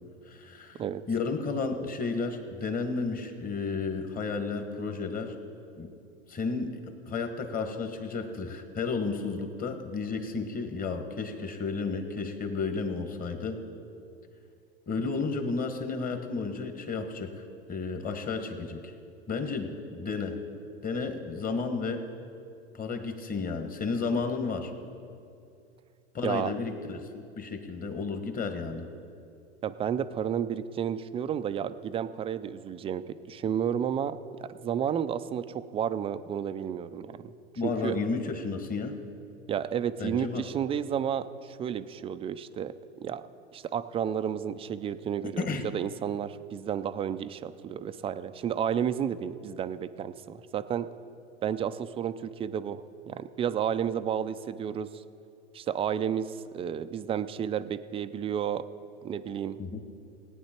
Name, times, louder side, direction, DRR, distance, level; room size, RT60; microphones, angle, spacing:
voice 1, 0.3-5.3 5.8-5.9 6.3-13.6 14.9-17.3 17.7-18.9 19.3-20.4 20.8-22.1 22.7-24.7 26.1-28.9 37.6-38.9 40.0-40.5 45.4-45.6 59.6-59.8, left 4 dB, 25° left, 7 dB, 1.4 m, -32 dB
voice 2, 29.6-37.3 37.6-38.0 39.5-42.7 43.0-43.2 43.5-45.5 45.7-50.9 51.4-55.0 55.5-58.6 59.0-59.6, right 8 dB, 20° right, 12 dB, 0.3 m, -31 dB
18.0 x 9.4 x 4.4 m, 2.5 s
hypercardioid pair, 105°, 34 cm